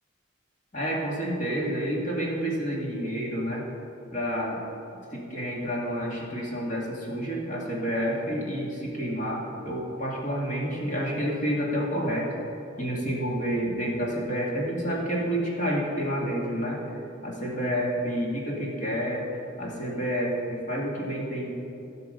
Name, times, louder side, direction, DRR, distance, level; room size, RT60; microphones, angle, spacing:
voice 1, 0.7-3.6 4.1-4.6 5.1-12.3 12.8-16.8 17.2-21.5, equal, 40° left, -3 dB, 2.2 m, -29 dB
15.5 x 5.8 x 5.2 m, 2.9 s
head